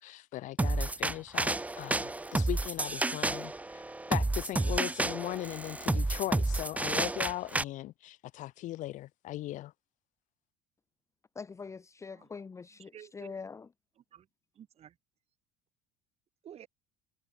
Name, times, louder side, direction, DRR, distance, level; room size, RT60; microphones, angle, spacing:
voice 1, 0.0-3.8 4.1-9.7, left 15 dB, 60° left, 2.6 m, -38 dB
sound 1, 0.6-7.6, right 2 dB, 10° right, 1.2 m, -31 dB
voice 2, 11.4-13.7, left 5 dB, 20° left, 0.8 m, -44 dB
voice 3, 12.8-13.3 14.0-14.3 14.5-15.0 16.4-16.7, right 10 dB, 45° right, 6.3 m, -52 dB
supercardioid pair, 95°, 15 cm